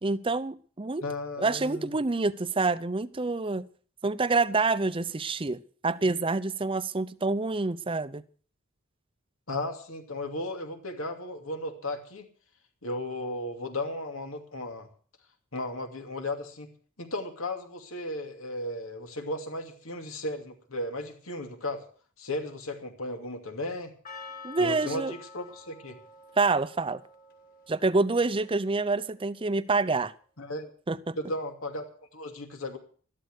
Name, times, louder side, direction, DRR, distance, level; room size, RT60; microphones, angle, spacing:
voice 1, 0.0-1.0 1.4-3.7 4.0-8.2 24.4-25.1 26.4-27.0 27.7-30.1 30.9-31.2, right 3 dB, 25° right, 0.6 m, -27 dB
voice 2, 1.0-1.9 9.5-12.3 12.8-14.9 15.5-16.7 17.0-21.8 22.2-23.9 24.6-26.0 30.4-30.7 31.2-31.8 32.1-32.8, left 1 dB, 90° left, 2.6 m, -35 dB
Percussion, 24.0-29.0, left 4 dB, 45° left, 2.7 m, -48 dB
13.0 x 12.5 x 6.5 m
head